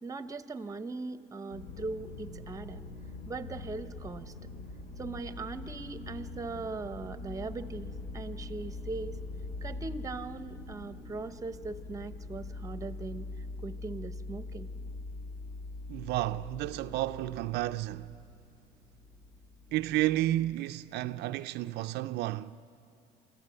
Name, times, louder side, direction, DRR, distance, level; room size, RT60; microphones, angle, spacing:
voice 1, 0.0-2.8 3.3-4.3 5.0-9.2 9.6-13.3 13.6-14.7, right 3 dB, 20° right, 0.8 m, -40 dB
sound 1, 1.5-20.5, left 2 dB, 90° left, 2.8 m, -43 dB
voice 2, 15.9-18.2 19.7-22.6, right 15 dB, 80° right, 0.4 m, -31 dB
26.5 x 14.5 x 7.8 m
cardioid pair, 110°, 17 cm